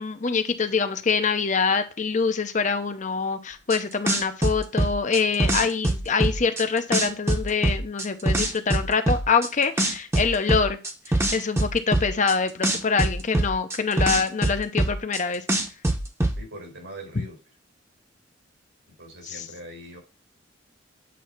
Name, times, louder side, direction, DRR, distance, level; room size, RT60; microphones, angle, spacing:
voice 1, 0.0-10.8 11.1-15.4 19.2-19.5, left 5 dB, 40° left, 9 dB, 0.7 m, -25 dB
sound 1, 3.7-3.8 4.1-6.6 6.9-9.5 9.8-12.3 12.6-15.2 15.5-16.4, right 1 dB, 15° right, 0.9 m, -23 dB
voice 2, 16.4-17.4 19.0-20.0, right 1 dB, 85° right, 0 dB, 4.5 m, -41 dB
8.4 x 2.8 x 5.7 m, 0.31 s
head